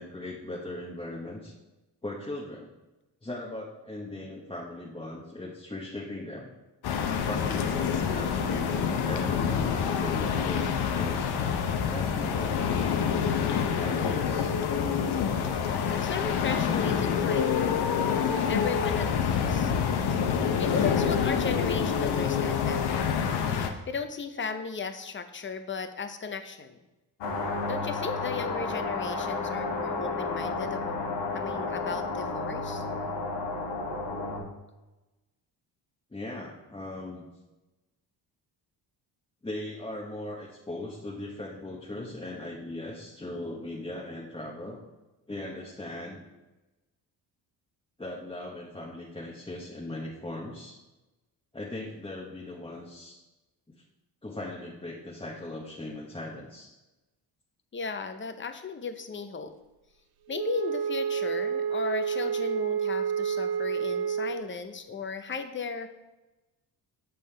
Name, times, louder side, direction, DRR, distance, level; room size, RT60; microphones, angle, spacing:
voice 1, 0.0-1.5 2.0-2.7 3.2-6.5 7.3-11.3 11.8-12.6 13.8-14.6 23.7-23.8 36.1-37.3 39.4-44.8 45.3-46.2 48.0-50.8 51.5-53.2 54.2-56.7, left 1 dB, 15° left, -5 dB, 1.0 m, -39 dB
sound 1, 6.8-23.7, left 7 dB, 70° left, 0.8 m, -27 dB
voice 2, 15.5-19.7 20.6-23.1 23.9-26.8 27.7-31.1 31.3-32.8 57.7-59.5 60.3-65.9, left 5 dB, 30° left, 8 dB, 0.7 m, -36 dB
sound 2, 27.2-34.4, left 3 dB, 90° left, 1.3 m, -32 dB
Wind instrument woodwind instrument, 60.3-64.5, right 7 dB, 65° right, 0.5 m, -29 dB
7.0 x 5.3 x 3.4 m, 1.1 s
cardioid pair, 80°, 41 cm